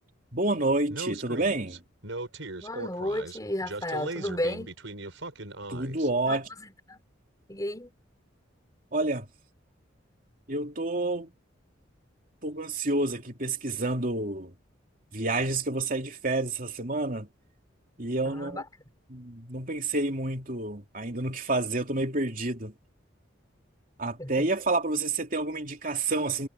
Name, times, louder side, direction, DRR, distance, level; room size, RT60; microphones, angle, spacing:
voice 1, 0.3-1.8 5.7-6.4 8.9-9.2 10.5-11.3 12.4-14.5 15.1-17.3 18.0-18.6 19.1-22.7 24.0-26.5, right 2 dB, 45° right, 3.2 m, -29 dB
Speech, 0.9-6.1, right 2 dB, 85° right, 5.2 m, -38 dB
voice 2, 2.6-4.7 6.3-7.0 7.5-7.9 18.2-18.6 24.2-24.5, left 1 dB, 20° left, 4.4 m, -33 dB
head